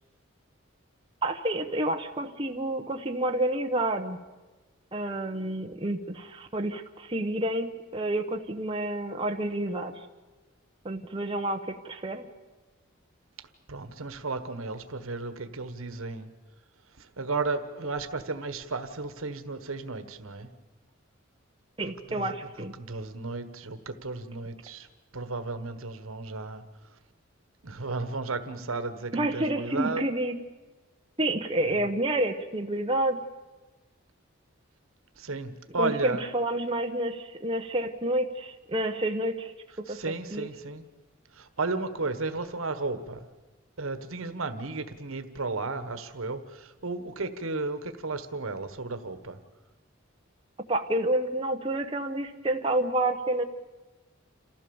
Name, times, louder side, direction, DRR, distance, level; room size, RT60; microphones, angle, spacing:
voice 1, 1.2-4.2 4.9-9.9 10.8-12.3 21.8-22.7 29.1-30.4 31.2-33.2 35.8-39.5 39.8-40.0 40.3-40.5 50.7-53.4, right 1 dB, 25° right, 4 dB, 1.0 m, -29 dB
voice 2, 13.7-16.3 17.0-20.5 22.1-22.3 22.8-24.9 25.1-26.6 27.6-30.0 31.7-31.8 35.2-36.2 39.9-40.8 41.3-43.3 43.8-49.4, right 3 dB, 80° right, 10 dB, 1.3 m, -34 dB
28.0 x 15.0 x 7.1 m, 1.2 s
head